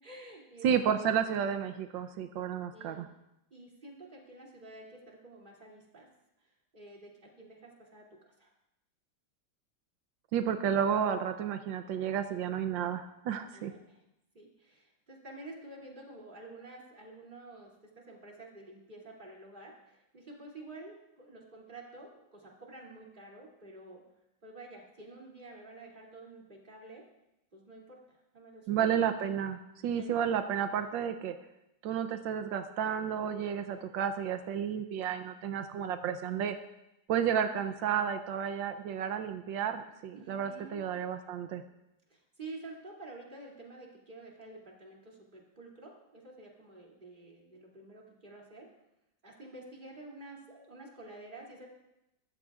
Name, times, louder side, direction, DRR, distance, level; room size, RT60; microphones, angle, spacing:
voice 1, 0.0-0.7 2.7-3.1 3.5-6.1 6.4-8.5 13.5-14.0 14.3-24.0 24.4-27.1 27.5-28.8 29.8-30.1 40.1-40.9 42.1-48.7 49.2-51.7, right 2 dB, 25° right, -2 dB, 2.8 m, -50 dB
voice 2, 0.6-3.1 10.3-13.7 28.7-31.3 31.8-36.6 37.1-41.6, right 8 dB, 85° right, 8 dB, 1.4 m, -31 dB
22.0 x 13.5 x 2.4 m, 0.88 s
omnidirectional pair, 2.0 m